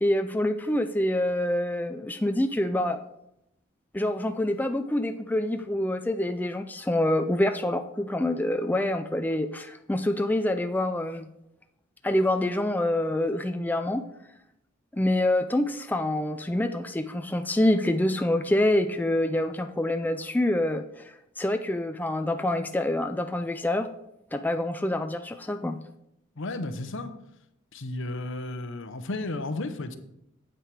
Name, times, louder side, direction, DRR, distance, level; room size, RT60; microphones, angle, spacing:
voice 1, 0.0-3.0 3.9-11.3 12.0-14.0 14.9-23.9 24.3-25.8, left 1 dB, 10° left, 7 dB, 0.4 m, -26 dB
voice 2, 26.4-27.1 27.7-30.0, left 2 dB, 65° left, 10 dB, 0.9 m, -33 dB
9.0 x 8.3 x 4.8 m, 0.82 s
head